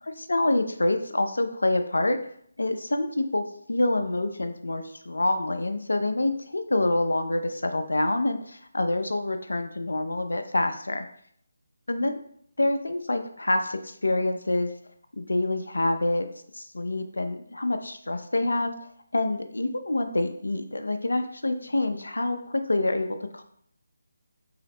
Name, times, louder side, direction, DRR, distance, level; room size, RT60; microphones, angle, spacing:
voice 1, 0.0-2.2 2.6-11.1 11.9-12.1 12.6-14.7 15.2-16.3 16.5-18.7 19.1-23.4, left 2 dB, 80° left, 7 dB, 0.5 m, -26 dB
3.7 x 3.0 x 3.4 m, 0.65 s
figure-of-eight pair, 160°, 0 cm